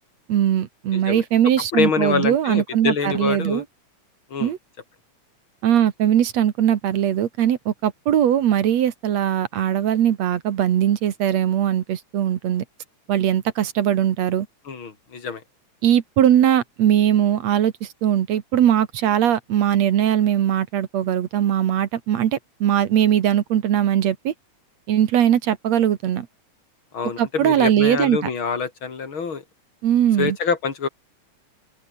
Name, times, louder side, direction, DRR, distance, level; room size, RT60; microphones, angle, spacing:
voice 1, 0.3-3.6 4.4-4.6 5.6-12.6 13.1-14.5 15.8-24.3 24.9-26.3 27.2-28.2 29.8-30.4, right 10 dB, 65° right, 2.4 m, -20 dB
voice 2, 0.9-1.2 1.7-3.6 4.3-4.5 14.7-15.4 26.9-29.4 30.2-30.9, left 5 dB, 40° left, 3.6 m, -25 dB
open air
omnidirectional pair, 3.5 m